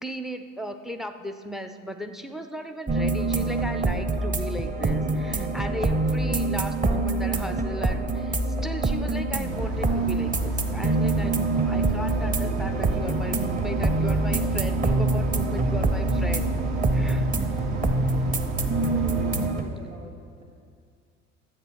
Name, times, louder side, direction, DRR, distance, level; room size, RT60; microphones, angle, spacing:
voice 1, 0.0-16.5 16.9-17.3, equal, ahead, 9 dB, 0.3 m, -36 dB
sound 1, 2.9-19.6, right 2 dB, 20° right, 0.8 m, -25 dB
sound 2, 9.5-19.5, right 3 dB, 65° right, 1.4 m, -32 dB
voice 2, 17.5-20.4, right 3 dB, 90° right, -1 dB, 0.9 m, -43 dB
12.0 x 8.1 x 6.0 m, 2.2 s
figure-of-eight pair, 65°, 41 cm